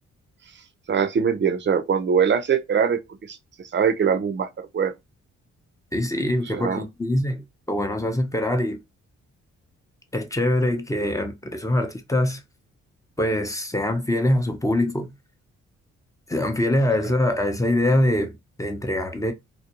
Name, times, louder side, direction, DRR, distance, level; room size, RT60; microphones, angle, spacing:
voice 1, 0.9-3.0 3.3-4.9 6.5-6.8, right 7 dB, 40° right, 0.6 m, -22 dB
voice 2, 5.9-7.4 7.7-8.8 10.1-12.4 13.2-15.1 16.3-19.3, left 1 dB, 10° left, 0.6 m, -23 dB
2.3 x 2.2 x 2.9 m
supercardioid pair, 55°, 29 cm